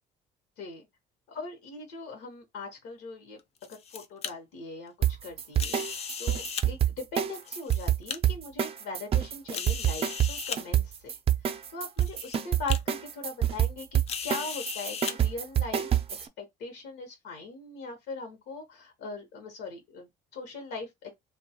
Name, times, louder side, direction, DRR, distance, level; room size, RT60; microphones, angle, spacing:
voice 1, 1.3-3.4 3.7-5.8 6.2-11.2 11.7-16.0 16.4-21.1, left 3 dB, 85° left, 0.8 m, -40 dB
sound 1, 3.4-4.3 5.5-6.7 7.4-8.2 8.8-8.9 9.5-10.6 11.5-11.6 12.0-12.4 12.7-12.8 14.1-15.1, left 7 dB, 40° left, 0.4 m, -36 dB
sound 2, 5.0-16.3, right 10 dB, 35° right, 0.4 m, -26 dB
2.6 x 2.2 x 2.7 m
cardioid pair, 110°, 17 cm